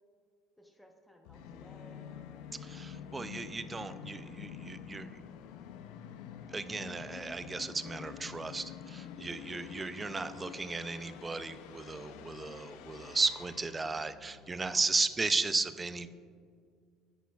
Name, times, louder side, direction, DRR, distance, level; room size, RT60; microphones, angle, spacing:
voice 1, 0.6-2.1 9.2-9.4 14.6-14.8, equal, 5° left, 2 dB, 0.9 m, -58 dB
Musical instrument, 1.2-15.0, left 8 dB, 80° left, 0.5 m, -48 dB
voice 2, 2.6-5.1 6.5-16.1, right 3 dB, 15° right, 12 dB, 0.3 m, -35 dB
10.0 x 9.4 x 2.3 m, 2.2 s
cardioid pair, 135°, 0 cm